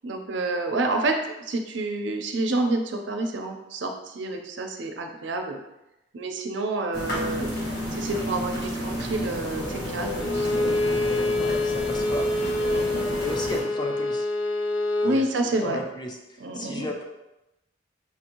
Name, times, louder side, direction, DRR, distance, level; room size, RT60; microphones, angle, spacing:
voice 1, 0.0-5.6 6.1-7.5 7.9-11.3 12.7-13.2 15.0-15.8 16.4-16.9, right 2 dB, 75° right, 3 dB, 0.5 m, -29 dB
sound 1, 6.9-13.6, equal, 55° left, 1.4 m, -31 dB
Bowed string instrument, 10.2-15.2, left 2 dB, 90° left, 0.5 m, -26 dB
voice 2, 11.4-12.3 13.2-14.3 15.0-16.2 16.5-17.0, left 1 dB, 25° left, 1 dB, 0.5 m, -34 dB
5.9 x 2.6 x 2.9 m, 0.93 s
head